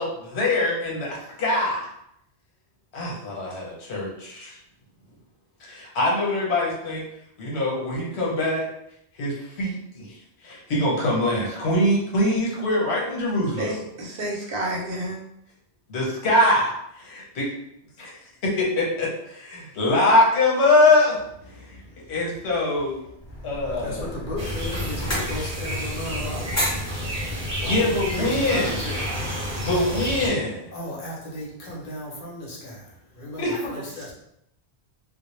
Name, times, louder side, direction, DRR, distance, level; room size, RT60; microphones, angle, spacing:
voice 1, 0.0-1.9 2.9-4.6 5.7-7.0 7.4-8.6 9.2-10.1 10.4-13.8 15.9-17.5 18.0-18.1 18.4-21.1 21.7-21.8 22.1-23.0 23.4-24.0 27.7-28.8 29.5-30.7 33.4-33.6, left 2 dB, 80° left, -3 dB, 1.0 m, -23 dB
voice 2, 13.6-15.2, right 1 dB, 65° right, -3 dB, 0.8 m, -30 dB
voice 3, 21.5-22.5 23.0-30.1 30.7-34.1, left 1 dB, 55° left, -3 dB, 0.8 m, -36 dB
sound 1, 23.2-28.6, equal, 20° left, 0.6 m, -33 dB
sound 2, 24.4-30.3, equal, 35° right, 0.7 m, -30 dB
2.1 x 2.1 x 3.0 m, 0.77 s
omnidirectional pair, 1.1 m